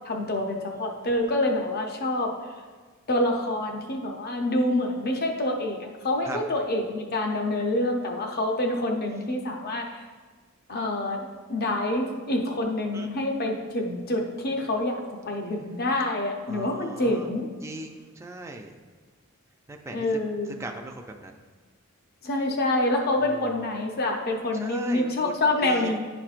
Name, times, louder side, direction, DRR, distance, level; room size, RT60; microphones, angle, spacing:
voice 1, 0.0-2.3 3.1-9.9 10.7-17.5 19.9-20.6 22.2-26.0, left 1 dB, 45° left, 2 dB, 0.7 m, -27 dB
voice 2, 16.5-17.3 17.6-18.7 19.7-20.1 20.6-21.3 23.2-23.5 24.5-25.3 25.6-26.0, right 2 dB, 15° right, 2 dB, 0.4 m, -38 dB
11.0 x 4.4 x 2.5 m, 1.4 s
head